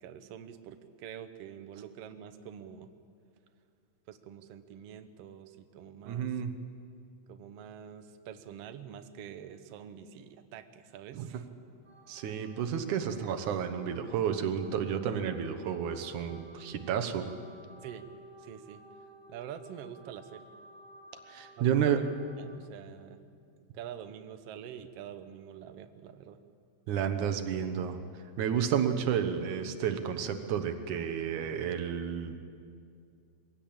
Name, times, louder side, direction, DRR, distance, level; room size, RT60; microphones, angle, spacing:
voice 1, 0.0-2.9 4.1-6.3 7.3-11.5 17.8-18.1 18.4-18.8 19.3-20.5 21.6-22.0 22.4-23.2 23.7-26.4 28.5-28.7, right 9 dB, 65° right, 9 dB, 1.8 m, -46 dB
voice 2, 6.1-6.5 11.1-11.3 12.1-17.3 21.3-22.0 26.9-28.0 28.4-32.4, right 8 dB, 90° right, 7 dB, 2.7 m, -31 dB
sound 1, 11.8-22.6, right 2 dB, 5° right, 2.6 m, -55 dB
23.0 x 16.0 x 8.7 m, 2.4 s
omnidirectional pair, 3.4 m